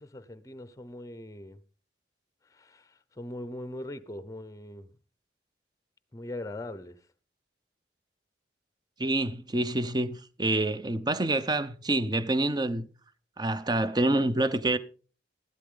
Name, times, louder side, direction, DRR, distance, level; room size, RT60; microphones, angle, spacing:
voice 1, 0.0-1.6 2.5-4.9 6.1-7.0, left 1 dB, 15° left, 0.7 m, -41 dB
voice 2, 9.0-12.9 13.4-14.8, right 2 dB, 20° right, 0.6 m, -27 dB
14.0 x 12.0 x 3.8 m
head